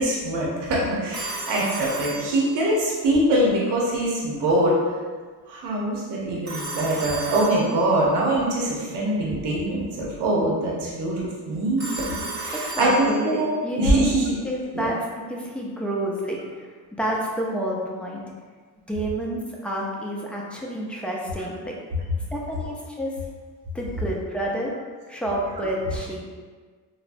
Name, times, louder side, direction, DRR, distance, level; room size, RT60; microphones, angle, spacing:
voice 1, 0.0-4.8 5.5-11.2 11.5-11.8 12.3-14.3 14.7-14.9, right 1 dB, 85° right, -4 dB, 0.7 m, -23 dB
Telephone, 1.1-2.9 6.4-8.1 11.8-13.5, right 2 dB, 45° right, 0.9 m, -34 dB
voice 2, 12.5-14.0 14.4-15.0 15.3-18.2 18.9-21.7 22.3-23.1 23.7-24.7 25.1-26.2, right 1 dB, 5° left, -4 dB, 0.5 m, -29 dB
3.3 x 2.0 x 2.5 m, 1.5 s
cardioid pair, 80°, 40 cm